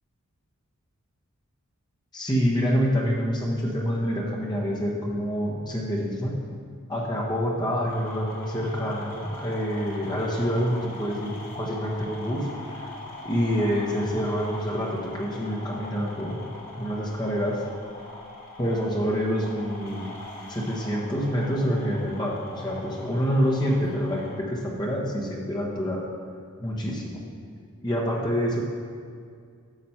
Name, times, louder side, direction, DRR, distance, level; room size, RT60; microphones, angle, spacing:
voice 1, 2.1-6.4 6.9-12.5 13.2-16.4 16.8-17.6 18.6-20.1 20.5-26.0 26.6-27.2 27.8-28.6, equal, 20° left, -3 dB, 1.1 m, -27 dB
sound 1, 7.9-24.3, left 2 dB, 40° left, 1.7 m, -42 dB
9.0 x 6.0 x 5.8 m, 2.2 s
head